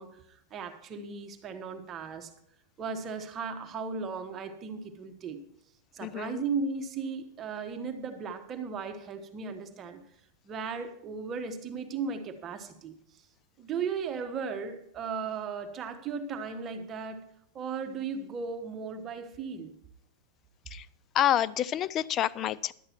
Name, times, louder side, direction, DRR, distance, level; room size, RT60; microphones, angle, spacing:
voice 1, 0.0-2.3 2.8-5.4 5.9-10.0 10.4-12.9 13.6-17.3 17.5-19.7, right 5 dB, 30° right, 7 dB, 1.2 m, -36 dB
voice 2, 6.0-6.5 20.7-20.9 21.1-22.7, left 11 dB, 35° left, 19 dB, 0.4 m, -28 dB
11.5 x 8.6 x 4.5 m, 0.70 s
hypercardioid pair, 125°, 0 cm